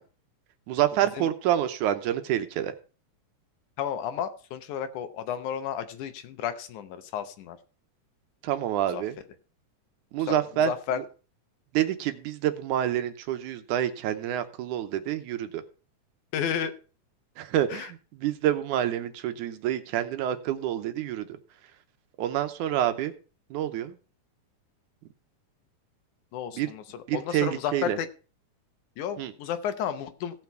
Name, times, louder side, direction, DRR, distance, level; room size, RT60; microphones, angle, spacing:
voice 1, 0.7-2.7 8.4-9.2 10.1-11.0 11.7-15.6 17.4-21.3 22.2-23.1 23.5-24.0 26.6-26.7 27.1-28.0 29.2-29.3, right 11 dB, 80° right, 9 dB, 2.2 m, -27 dB
voice 2, 3.8-7.6 8.9-9.0 10.3-10.4 10.6-11.0 16.3-16.7 17.7-17.9 26.3-28.1 29.0-30.4, left 8 dB, 75° left, 10 dB, 2.2 m, -32 dB
16.5 x 5.9 x 4.4 m, 0.36 s
omnidirectional pair, 3.7 m